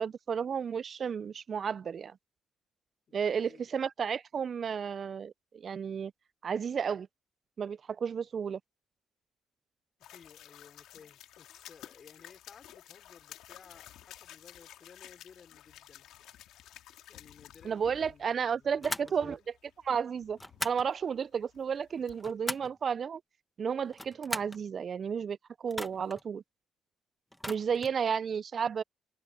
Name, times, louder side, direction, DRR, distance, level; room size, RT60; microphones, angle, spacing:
voice 1, 0.0-2.2 3.1-6.1 6.4-7.1 7.6-8.6 17.6-19.4 19.8-20.4 20.6-23.2 23.6-26.4 27.5-28.8, right 7 dB, 50° right, 0.4 m, -32 dB
voice 2, 3.1-3.7 10.0-16.1 17.1-19.4 27.7-27.8, left 6 dB, 45° left, 4.3 m, -56 dB
sound 1, 10.0-22.4, left 12 dB, 90° left, 2.0 m, -53 dB
sound 2, 18.8-19.2 20.4-20.9 21.9-22.8 23.9-24.6 25.7-26.2 27.3-28.0, left 1 dB, 5° left, 1.5 m, -39 dB
cardioid pair, 90°, 0 cm